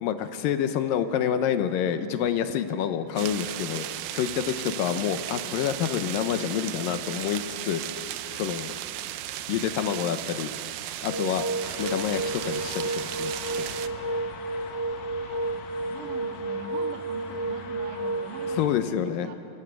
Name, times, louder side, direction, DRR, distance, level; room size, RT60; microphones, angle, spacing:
voice 1, 0.0-7.8 8.3-8.7 9.5-10.5 11.0-11.5 11.8-13.7 18.6-19.3, left 9 dB, 80° left, 9 dB, 2.6 m, -28 dB
sound 1, 3.2-13.9, right 13 dB, 85° right, 2.5 m, -35 dB
sound 2, 11.1-18.7, right 2 dB, 35° left, 4.4 m, -32 dB
sound 3, 11.6-18.7, left 5 dB, 60° left, 2.4 m, -42 dB
voice 2, 15.5-19.3, right 4 dB, 65° right, 3 dB, 3.2 m, -43 dB
26.0 x 15.5 x 8.2 m, 2.5 s
omnidirectional pair, 4.1 m